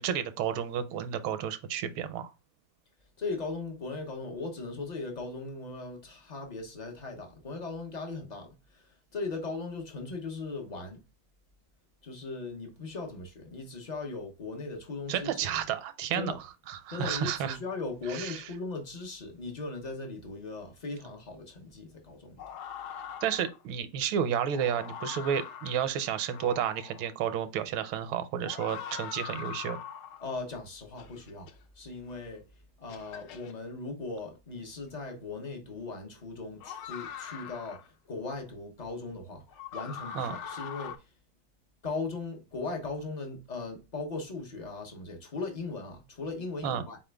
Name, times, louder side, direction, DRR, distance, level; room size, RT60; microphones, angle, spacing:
voice 1, 0.0-2.3 15.1-16.3 16.7-17.6 18.1-18.5 23.2-29.8 40.1-40.4 46.6-46.8, right 9 dB, 80° right, 1.4 m, -31 dB
voice 2, 3.2-11.0 12.0-15.6 16.1-16.4 16.9-22.4 30.2-32.4 32.8-39.4 39.7-41.1 41.8-47.0, left 3 dB, 45° left, 0.5 m, -38 dB
sound 1, 22.4-23.6 24.3-27.1 28.4-30.4 31.0-31.5 32.3-32.4 32.9-33.5 35.0-35.1 36.6-37.9 39.5-41.0, left 8 dB, 80° left, 1.6 m, -42 dB
4.2 x 3.7 x 3.3 m
omnidirectional pair, 2.3 m